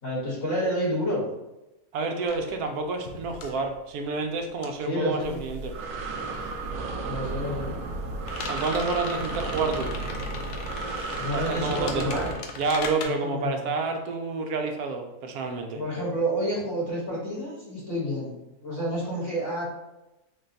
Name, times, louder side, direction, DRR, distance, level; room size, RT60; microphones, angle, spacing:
voice 1, 0.0-1.3 4.9-5.4 7.0-7.7 11.2-12.4 13.0-13.7 15.7-18.3 18.6-19.7, equal, 50° left, -6 dB, 1.7 m, -29 dB
voice 2, 1.9-5.7 8.5-9.9 11.3-12.2 12.6-15.8, right 3 dB, 90° right, 5 dB, 1.1 m, -29 dB
sound 1, 2.3-6.1 6.3-13.1, left 4 dB, 75° left, 1.0 m, -40 dB
Breathing, 5.2-12.3, right 3 dB, 70° right, 1.0 m, -33 dB
3.9 x 2.2 x 3.9 m, 0.96 s
omnidirectional pair, 1.6 m